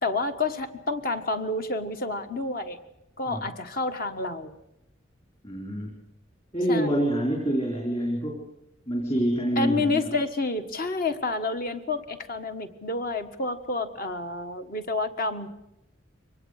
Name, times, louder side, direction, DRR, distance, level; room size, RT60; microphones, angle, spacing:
voice 1, 0.0-2.8 3.2-4.6 6.7-6.9 9.6-15.5, left 3 dB, 45° left, 8 dB, 1.5 m, -29 dB
voice 2, 5.4-5.9 6.5-8.5 8.9-10.1, equal, 30° left, 0 dB, 4.1 m, -26 dB
23.5 x 19.0 x 6.6 m, 0.86 s
head